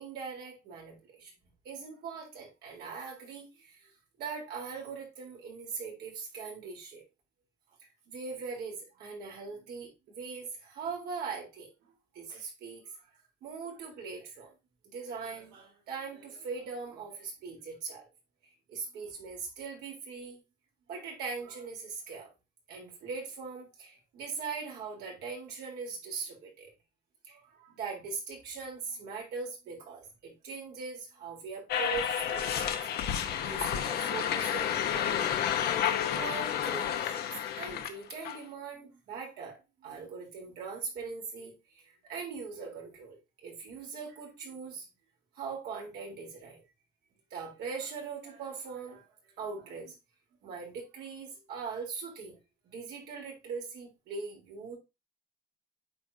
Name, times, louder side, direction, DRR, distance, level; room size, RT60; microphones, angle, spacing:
voice 1, 0.0-1.3 1.6-3.9 4.2-7.0 8.1-11.7 12.1-12.8 13.4-14.5 14.8-18.0 18.7-20.4 20.9-22.3 22.7-26.7 27.2-32.8 33.4-35.4 35.8-37.2 37.6-44.9 45.4-46.6 47.3-49.1 49.4-49.9 50.4-52.4 52.6-54.8, right 5 dB, 75° right, -1 dB, 3.7 m, -41 dB
sound 1, 31.7-38.4, left 9 dB, 70° left, 1.0 m, -30 dB
8.6 x 5.0 x 2.7 m, 0.25 s
cardioid pair, 110°, 17 cm